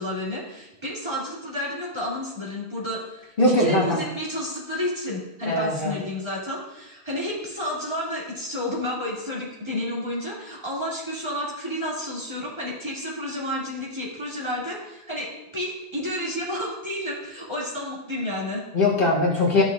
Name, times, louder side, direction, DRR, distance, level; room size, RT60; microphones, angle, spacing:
voice 1, 0.0-18.6, left 1 dB, 25° right, -6 dB, 2.5 m, -31 dB
voice 2, 3.4-4.0 5.5-6.0 18.7-19.6, left 2 dB, 55° left, -4 dB, 1.6 m, -21 dB
13.5 x 5.9 x 2.4 m, 0.95 s
omnidirectional pair, 1.0 m